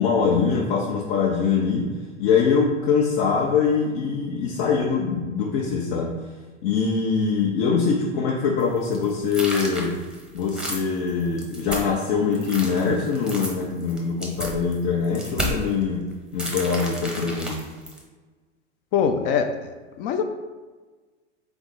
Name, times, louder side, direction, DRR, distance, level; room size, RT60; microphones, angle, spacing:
voice 1, 0.0-1.9 2.2-6.1 6.6-10.0 10.3-16.1 16.3-17.6, left 5 dB, 55° left, -2 dB, 0.8 m, -23 dB
sound 1, 8.6-12.0 12.3-15.7 16.4-18.0, equal, ahead, 0.7 m, -32 dB
voice 2, 18.9-19.5 20.0-20.2, left 7 dB, 35° left, 7 dB, 0.4 m, -21 dB
3.6 x 3.5 x 4.0 m, 1.3 s
hypercardioid pair, 105°, 36 cm